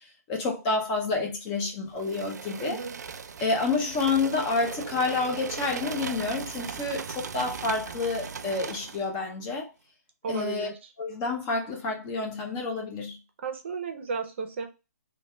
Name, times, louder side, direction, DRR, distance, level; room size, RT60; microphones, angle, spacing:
voice 1, 0.3-2.8 3.4-9.7 10.3-10.7 11.0-13.2, left 3 dB, 15° left, 0.5 m, -29 dB
sound 1, 2.0-9.1, right 6 dB, 80° right, 0.4 m, -38 dB
voice 2, 2.6-3.0 10.2-10.8 13.4-14.6, right 5 dB, 40° right, 0.6 m, -34 dB
3.2 x 2.3 x 3.3 m
hypercardioid pair, 165°, 9 cm